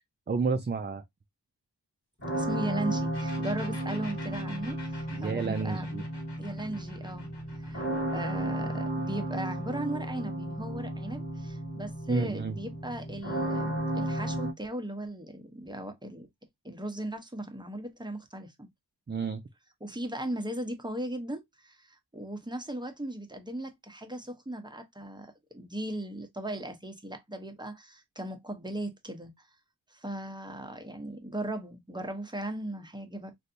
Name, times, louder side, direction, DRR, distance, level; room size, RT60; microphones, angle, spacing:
voice 1, 0.3-1.0 5.1-6.0 12.1-12.6 19.1-19.4, right 4 dB, 25° right, 0.4 m, -30 dB
sound 1, 2.2-14.5, right 1 dB, 30° left, 1.5 m, -34 dB
voice 2, 2.3-6.0 6.4-7.3 7.6-7.8 8.1-13.7 13.9-16.3 16.6-18.7 19.8-29.5 29.9-33.3, right 1 dB, 10° right, 0.8 m, -37 dB
sound 2, 3.1-10.6, left 2 dB, 85° left, 1.3 m, -49 dB
3.3 x 2.6 x 2.6 m
wide cardioid pair, 45°, 40 cm